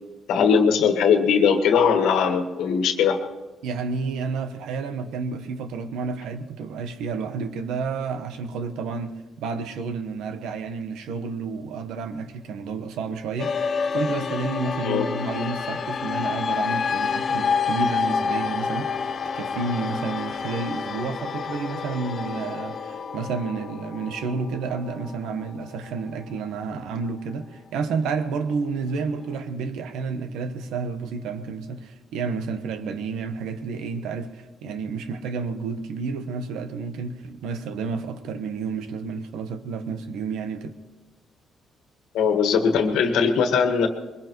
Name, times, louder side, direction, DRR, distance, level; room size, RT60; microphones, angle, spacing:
voice 1, 0.3-3.2 14.8-15.1 42.1-43.9, left 6 dB, 85° left, 1.6 m, -20 dB
voice 2, 3.6-19.1 19.4-40.8, right 4 dB, 90° right, 1.1 m, -30 dB
sound 1, 13.4-27.9, left 5 dB, 50° left, 0.7 m, -29 dB
22.0 x 21.0 x 3.1 m
cardioid pair, 90°, 0 cm